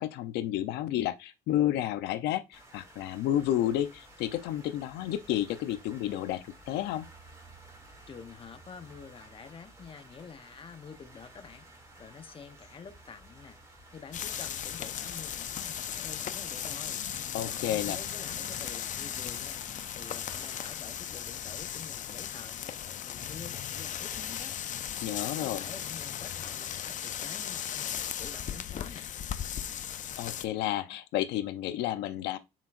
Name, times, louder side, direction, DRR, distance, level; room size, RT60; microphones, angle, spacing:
voice 1, 0.0-7.1 17.3-18.0 25.0-25.6 30.2-32.4, left 12 dB, 85° left, 0.8 m, -31 dB
sound 1, 2.5-20.7, right 2 dB, 20° right, 2.7 m, -54 dB
voice 2, 8.1-11.7 12.0-13.6 13.9-19.6 19.9-24.6 25.2-29.1, left 6 dB, 30° left, 1.0 m, -48 dB
sound 2, 14.1-30.5, left 9 dB, 50° left, 0.6 m, -37 dB
7.2 x 5.9 x 2.6 m
cardioid pair, 110°, 17 cm